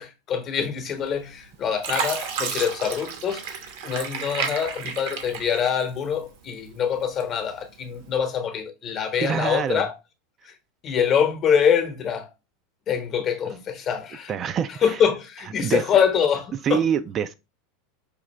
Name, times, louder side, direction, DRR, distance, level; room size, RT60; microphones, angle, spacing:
voice 1, 0.0-3.5 3.8-10.0 10.4-10.5 10.8-12.3 12.9-14.3 14.8-16.8, left 7 dB, 40° left, 0.9 m, -24 dB
Fill (with liquid), 1.1-1.4 1.8-6.2 6.7-7.5 8.0-8.2, right 6 dB, 70° right, 1.0 m, -31 dB
voice 2, 9.2-9.8 14.3-14.9 15.6-15.8 16.6-17.3, right 8 dB, 35° right, 0.3 m, -25 dB
5.0 x 2.5 x 3.1 m
hypercardioid pair, 105°, 0 cm